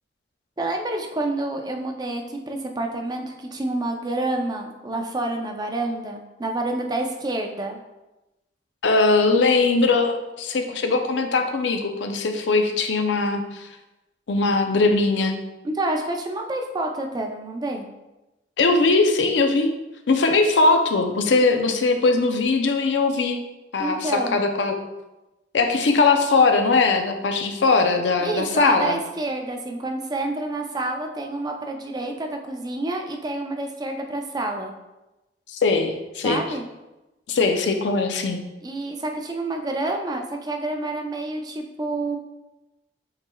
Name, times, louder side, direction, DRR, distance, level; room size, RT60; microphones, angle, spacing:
voice 1, 0.6-7.8 15.6-17.9 23.8-24.4 28.2-34.7 36.2-36.6 38.6-42.2, right 2 dB, 20° right, 3 dB, 0.4 m, -28 dB
voice 2, 8.8-13.7 14.3-15.4 18.6-19.7 20.1-23.4 23.7-24.8 25.5-29.0 35.5-36.4 37.3-38.4, left 3 dB, 85° left, 6 dB, 0.5 m, -20 dB
7.2 x 3.2 x 2.3 m, 1.0 s
head